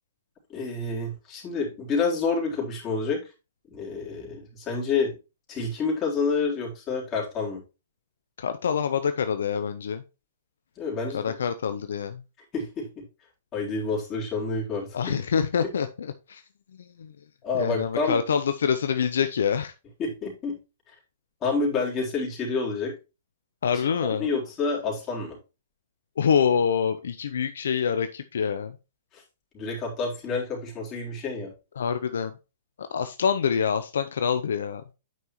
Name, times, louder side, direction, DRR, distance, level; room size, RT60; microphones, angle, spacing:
voice 1, 0.5-3.3 3.7-5.2 5.5-7.6 10.8-11.4 12.5-13.0 13.5-15.1 17.4-18.2 20.0-20.6 20.9-21.0 21.4-22.9 23.7-25.4 29.1-29.2 29.5-31.5, left 4 dB, 25° left, -3 dB, 3.8 m, -28 dB
voice 2, 8.4-10.0 11.1-12.2 14.9-16.4 16.8-17.1 17.5-19.7 23.6-24.3 26.2-28.8 31.8-32.3 32.8-34.8, left 7 dB, 75° left, 10 dB, 0.6 m, -26 dB
9.2 x 5.5 x 3.1 m, 0.29 s
hypercardioid pair, 125°, 0 cm